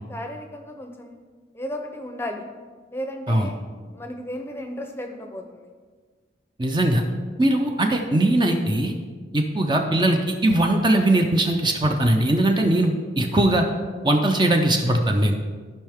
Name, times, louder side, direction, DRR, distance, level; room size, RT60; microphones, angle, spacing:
voice 1, 0.1-1.2 1.5-2.5 2.9-3.6 3.9-5.7, left 1 dB, 15° left, 4 dB, 0.7 m, -34 dB
voice 2, 6.6-7.0 7.4-8.9 9.3-13.6 14.0-15.3, right 1 dB, 25° right, 3 dB, 0.6 m, -20 dB
13.5 x 5.5 x 3.6 m, 1.5 s
head